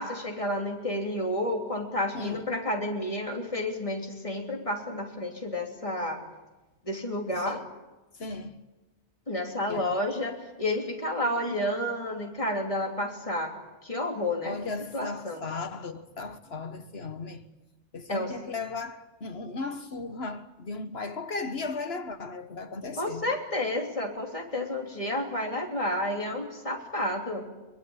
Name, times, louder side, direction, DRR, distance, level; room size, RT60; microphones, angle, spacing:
voice 1, 0.0-6.2 6.8-7.6 9.3-13.5 13.8-14.6 14.9-15.4 18.1-18.3 23.0-27.4, left 1 dB, 20° left, 3.2 m, -30 dB
voice 2, 2.1-2.5 7.4-7.7 8.1-8.6 9.7-9.9 14.4-17.5 17.9-23.3, left 3 dB, 45° left, 1.6 m, -36 dB
23.0 x 22.5 x 8.9 m
omnidirectional pair, 1.5 m